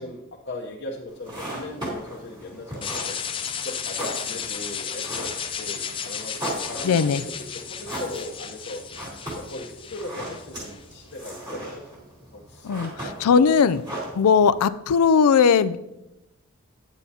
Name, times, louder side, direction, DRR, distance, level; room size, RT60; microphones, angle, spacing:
voice 1, 0.0-3.2 3.6-5.3 5.6-8.8 9.3-11.9 12.3-12.7 13.0-13.5 14.2-14.3, left 2 dB, 50° left, -3 dB, 0.8 m, -37 dB
sound 1, 1.1-14.7, right 1 dB, 20° right, 2.4 m, -38 dB
sound 2, 2.8-10.8, left 7 dB, 25° left, 0.4 m, -34 dB
voice 2, 6.8-7.2 12.6-13.8 14.1-15.8, left 6 dB, 90° left, 15 dB, 0.4 m, -19 dB
9.1 x 9.0 x 2.8 m, 0.91 s
head